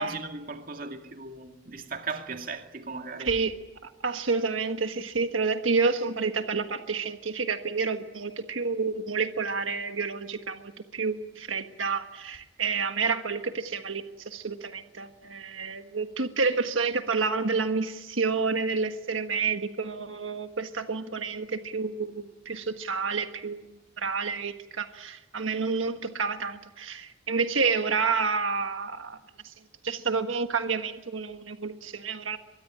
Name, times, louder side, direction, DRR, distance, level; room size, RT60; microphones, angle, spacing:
voice 1, 0.0-3.4, right 4 dB, 45° right, 2.4 m, -37 dB
voice 2, 3.2-3.5 3.8-29.2 29.4-29.5 29.8-32.4, right 4 dB, 90° right, 1.5 m, -29 dB
25.0 x 22.5 x 10.0 m
head